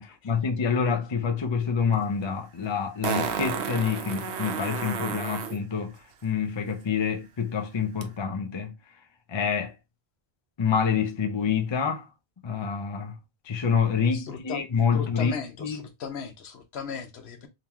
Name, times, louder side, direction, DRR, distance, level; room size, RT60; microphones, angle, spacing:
voice 1, 0.0-8.7 9.3-9.7 10.6-12.1 12.4-13.1 13.4-15.3 15.6-15.8, left 6 dB, 35° left, 0.5 m, -27 dB
Fart, 1.9-2.0 3.0-5.6 8.0-8.1, right 7 dB, 85° right, 0.9 m, -31 dB
voice 2, 14.1-14.7 14.9-17.5, left 6 dB, 80° left, 1.0 m, -36 dB
3.6 x 2.9 x 2.9 m
omnidirectional pair, 1.1 m